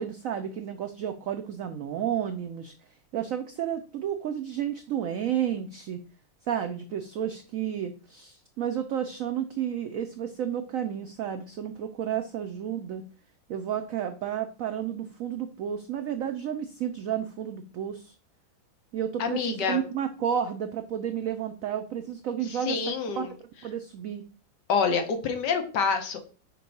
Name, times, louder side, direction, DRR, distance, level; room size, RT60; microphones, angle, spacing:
voice 1, 0.0-2.7 3.1-6.0 6.5-13.0 13.5-18.1 18.9-23.3 23.6-24.2, right 9 dB, 85° right, 8 dB, 0.7 m, -31 dB
voice 2, 19.2-19.8 22.7-23.3 24.7-26.2, left 5 dB, 65° left, 6 dB, 1.5 m, -27 dB
4.6 x 4.4 x 5.2 m, 0.38 s
omnidirectional pair, 2.0 m